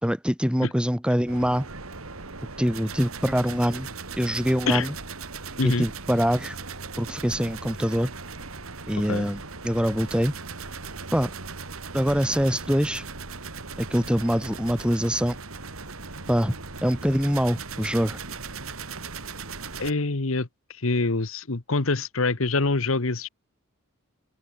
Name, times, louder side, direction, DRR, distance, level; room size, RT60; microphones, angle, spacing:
voice 1, 0.0-1.7 2.6-3.9 4.2-4.9 5.6-6.6 7.0-8.1 8.9-10.3 11.1-11.3 11.9-13.0 13.8-15.4 16.3-16.6 16.8-18.2, equal, 5° right, 3.8 m, -24 dB
sound 1, 1.3-19.9, right 4 dB, 80° right, 2.8 m, -38 dB
voice 2, 19.8-23.3, left 3 dB, 70° left, 1.3 m, -25 dB
open air
head